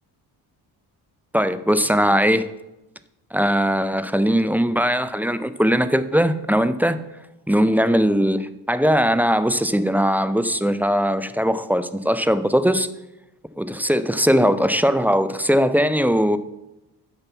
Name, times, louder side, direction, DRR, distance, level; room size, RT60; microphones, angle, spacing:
voice 1, 1.3-2.5 3.3-7.0 7.5-12.9 13.6-16.4, equal, 5° right, 0.4 m, -20 dB
6.8 x 5.8 x 7.0 m
cardioid pair, 75°, 46 cm